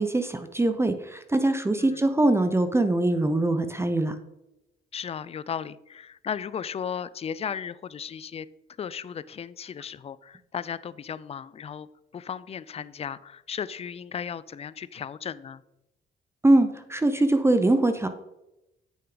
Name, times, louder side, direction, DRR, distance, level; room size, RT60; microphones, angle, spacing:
voice 1, 0.0-4.2 16.4-18.1, right 2 dB, 15° right, 9 dB, 0.7 m, -22 dB
voice 2, 4.9-8.5 8.8-11.9 12.1-15.6, left 7 dB, 30° left, 17 dB, 0.4 m, -35 dB
8.6 x 6.7 x 3.9 m, 0.91 s
cardioid pair, 90°, 20 cm